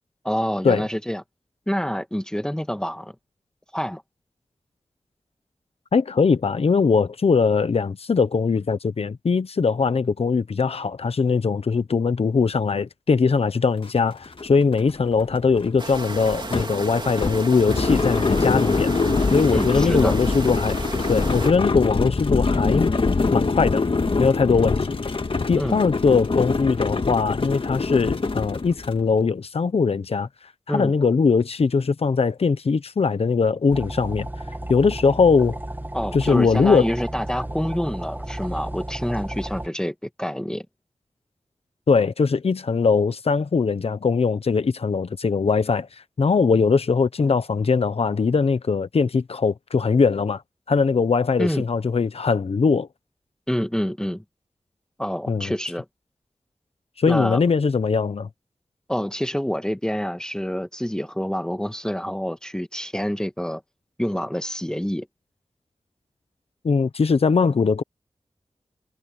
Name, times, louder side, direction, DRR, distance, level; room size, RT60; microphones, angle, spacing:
voice 1, 0.2-1.2 1.7-3.1 3.7-4.0 19.5-20.2 25.6-25.8 30.7-30.9 35.9-40.6 51.4-51.6 53.5-54.2 55.0-55.8 57.0-57.4 58.9-63.6 64.0-65.1, equal, 5° left, 1.6 m, -27 dB
voice 2, 5.9-18.9 19.3-20.8 21.1-22.9 23.3-23.8 24.2-25.0 25.5-30.3 30.7-34.3 34.7-35.6 36.1-36.9 41.9-45.9 46.2-50.4 50.7-52.9 55.3-55.5 57.0-58.3 66.6-67.8, left 5 dB, 75° left, 1.0 m, -21 dB
sound 1, 13.8-13.9 14.3-29.0, left 3 dB, 60° left, 1.9 m, -24 dB
sound 2, 15.8-21.5, right 3 dB, 50° right, 3.0 m, -33 dB
sound 3, 33.7-39.7, right 1 dB, 20° right, 1.8 m, -33 dB
wide cardioid pair, 55°, 10 cm